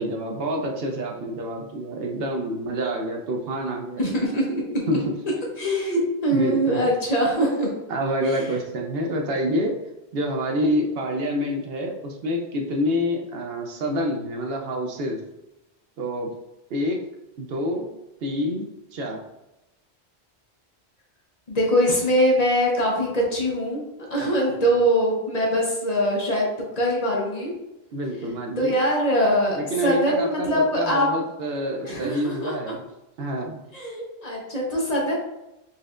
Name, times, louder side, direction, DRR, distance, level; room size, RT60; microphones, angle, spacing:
voice 1, 0.0-4.1 4.9-5.0 6.3-6.9 7.9-9.7 10.1-15.2 16.0-16.3 16.7-17.0 17.4-17.9 18.2-18.7 18.9-19.2 24.2-24.6 27.9-28.8 29.6-32.9 33.2-33.6, equal, 70° right, 2 dB, 0.8 m, -27 dB
voice 2, 4.0-4.8 5.6-7.7 8.3-8.4 21.5-23.8 24.1-26.5 26.8-27.5 28.6-31.1 31.8-32.5 33.7-35.1, equal, 40° left, -3 dB, 0.9 m, -22 dB
4.1 x 3.2 x 2.4 m, 0.93 s
omnidirectional pair, 1.1 m